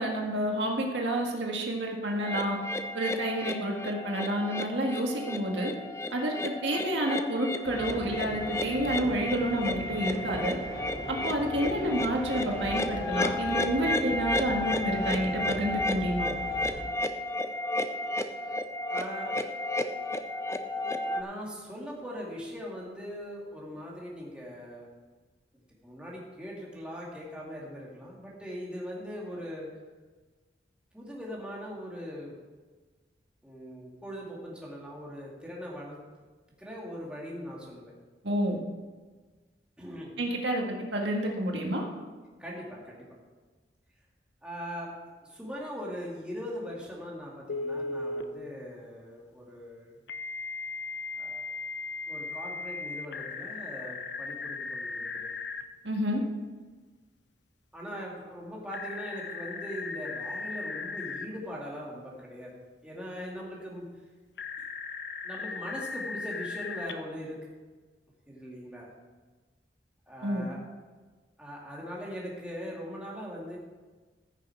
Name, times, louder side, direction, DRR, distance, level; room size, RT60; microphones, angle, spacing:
voice 1, 0.0-2.6 2.9-5.7 6.1-10.6 11.1-16.3 38.2-38.6 40.2-40.6 40.9-41.8 55.8-56.2 70.2-70.5, right 1 dB, 90° right, 1 dB, 1.8 m, -29 dB
sound 1, 2.2-21.2, left 1 dB, 15° left, 0.5 m, -33 dB
sound 2, 7.6-16.8, equal, 40° right, 1.9 m, -40 dB
voice 2, 18.9-19.4 21.0-24.9 25.5-29.7 30.9-32.3 33.4-36.0 36.6-37.9 39.8-40.2 42.4-43.1 44.4-44.9 45.3-49.9 51.2-51.4 52.1-55.3 57.7-62.5 62.8-63.8 65.2-67.4 68.3-68.9 70.1-70.6 71.4-73.6, equal, 5° right, -4 dB, 2.2 m, -40 dB
Telephone, 47.5-48.2 50.1-55.6 58.7-61.3 64.4-66.9, left 4 dB, 75° left, 0.7 m, -37 dB
14.5 x 6.6 x 4.6 m, 1.3 s
head